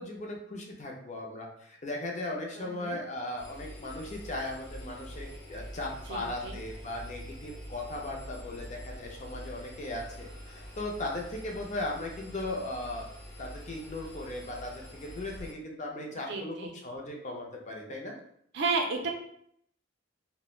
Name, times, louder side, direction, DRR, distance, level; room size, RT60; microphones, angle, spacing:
voice 1, 0.0-13.0 13.4-18.2, left 1 dB, 35° left, 0 dB, 0.4 m, -37 dB
voice 2, 2.6-3.0 6.1-6.6 16.3-16.7 18.5-19.1, right 3 dB, 60° right, 2 dB, 0.4 m, -32 dB
Engine, 3.4-15.5, equal, 75° left, 0.7 m, -45 dB
3.0 x 2.0 x 2.3 m, 0.69 s
head